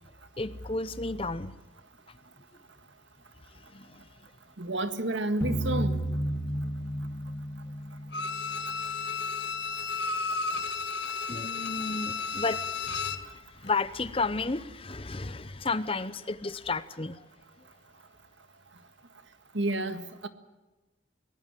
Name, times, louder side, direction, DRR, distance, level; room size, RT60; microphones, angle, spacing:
voice 1, 0.4-1.5 3.7-4.1 11.3-13.3 13.6-17.2, left 3 dB, 30° left, 15 dB, 0.8 m, -32 dB
voice 2, 4.6-6.0 19.5-20.3, right 2 dB, 70° right, 10 dB, 1.8 m, -30 dB
sound 1, 5.4-8.5, right 1 dB, 10° left, 2.6 m, -32 dB
Bowed string instrument, 8.1-13.3 13.7-13.8, left 5 dB, 60° left, 1.5 m, -33 dB
23.5 x 19.0 x 7.6 m, 1.1 s
head